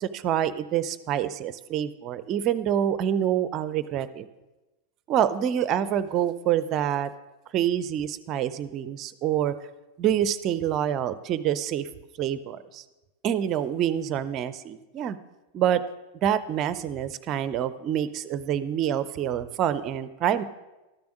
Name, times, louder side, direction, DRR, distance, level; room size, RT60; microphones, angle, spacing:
voice 1, 0.0-4.3 5.1-7.1 7.5-9.5 10.0-11.9 12.2-12.8 13.2-15.2 15.5-15.8 16.2-20.4, right 10 dB, 35° right, 15 dB, 0.5 m, -26 dB
13.0 x 6.9 x 6.3 m, 1.1 s
figure-of-eight pair, 90°, 0 cm